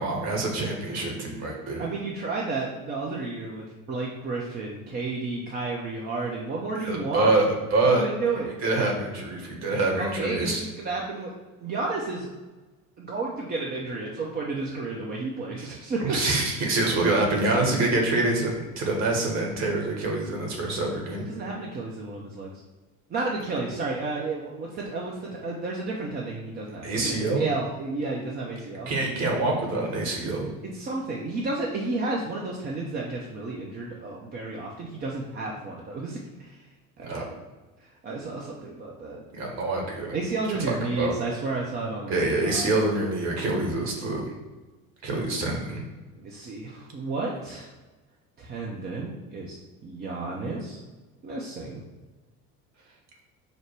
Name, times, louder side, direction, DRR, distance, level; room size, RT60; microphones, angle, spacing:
voice 1, 0.0-1.9 6.8-8.0 8.6-10.6 15.6-15.7 16.0-21.2 26.8-27.5 28.9-30.5 37.0-37.3 39.3-40.1 40.5-41.2 42.1-44.2 45.0-45.8, right 2 dB, 40° right, 0 dB, 1.2 m, -26 dB
voice 2, 1.8-7.3 8.0-8.5 10.0-11.3 11.6-12.3 13.0-16.2 21.3-22.6 23.1-28.9 30.7-36.6 37.0-37.4 38.0-39.2 40.1-42.1 42.4-42.7 46.2-47.7 48.4-49.6 49.8-50.8 51.2-51.8, right 3 dB, 25° right, -2 dB, 0.6 m, -32 dB
5.0 x 2.1 x 4.5 m, 1.2 s
figure-of-eight pair, 65°, 43 cm